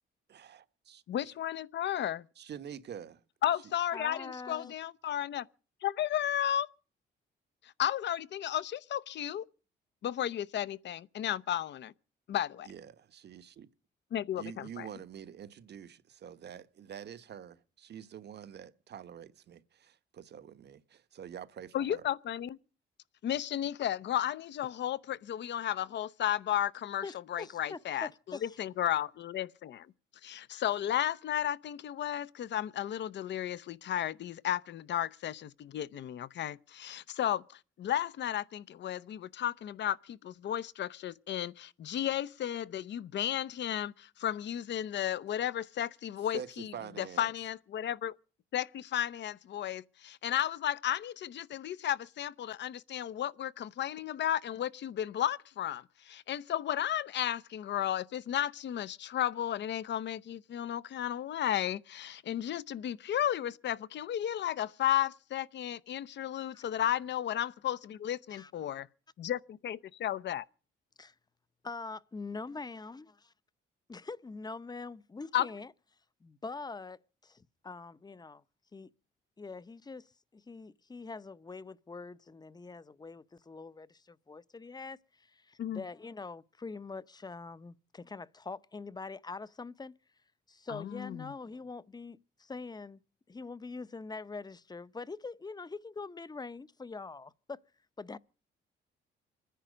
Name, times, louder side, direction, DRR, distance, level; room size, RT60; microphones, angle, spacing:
voice 1, 0.3-1.3 2.4-3.2 12.6-13.7 14.4-22.0 46.3-47.3, right 9 dB, 60° right, 1.2 m, -46 dB
voice 2, 1.1-2.3 3.4-5.5 5.8-6.7 7.6-9.4 10.0-11.9 12.3-12.7 14.1-14.9 21.7-22.6 23.2-27.0 27.3-29.9 30.2-48.2 48.5-68.8 69.2-69.4 69.6-70.4 75.3-75.5 85.6-85.8 90.7-91.3, left 11 dB, 65° left, 0.8 m, -34 dB
voice 3, 3.9-4.7 27.0-28.6 66.5-66.6 68.3-68.5 71.0-71.1 71.6-73.1 73.9-75.7 76.2-78.4 78.7-78.9 79.4-80.1 80.3-90.0 90.5-93.0 93.3-97.6 98.0-98.2, left 4 dB, 20° left, 0.7 m, -44 dB
26.0 x 10.0 x 5.1 m
cardioid pair, 90°, 20 cm